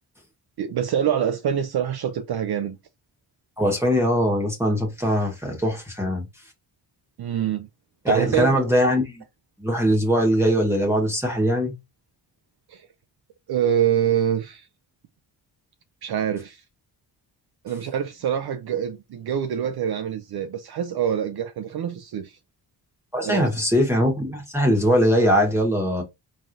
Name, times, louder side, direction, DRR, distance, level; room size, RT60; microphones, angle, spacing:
voice 1, 0.6-2.8 7.2-7.7 8.1-8.6 12.7-12.9 13.5-14.7 16.0-16.6 17.6-22.4 23.2-23.5, right 9 dB, 60° right, 0.6 m, -25 dB
voice 2, 3.6-6.2 8.0-9.2 9.6-11.7 23.1-26.0, equal, 5° right, 1.3 m, -21 dB
3.9 x 3.1 x 2.6 m
cardioid pair, 70°, 44 cm